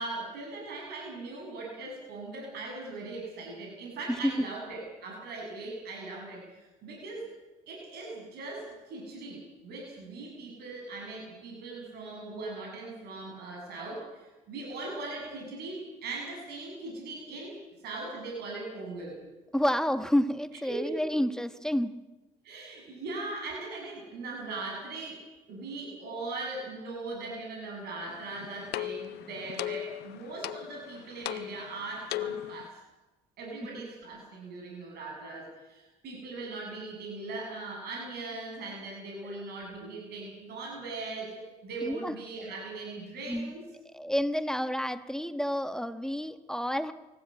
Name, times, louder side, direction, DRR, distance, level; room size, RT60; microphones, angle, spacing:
voice 1, 0.0-7.3 7.7-17.6 17.8-19.2 20.7-21.1 22.4-25.2 25.5-32.8 33.4-43.6, right 3 dB, 75° right, 0 dB, 7.5 m, -40 dB
voice 2, 4.1-4.4 19.5-21.9 39.3-39.4 41.8-42.2 43.3-43.5 43.9-46.9, equal, 5° left, 9 dB, 1.3 m, -29 dB
sound 1, 28.1-32.7, left 13 dB, 75° left, 0.9 m, -38 dB
25.0 x 15.5 x 8.8 m, 1.1 s
cardioid pair, 110°, 17 cm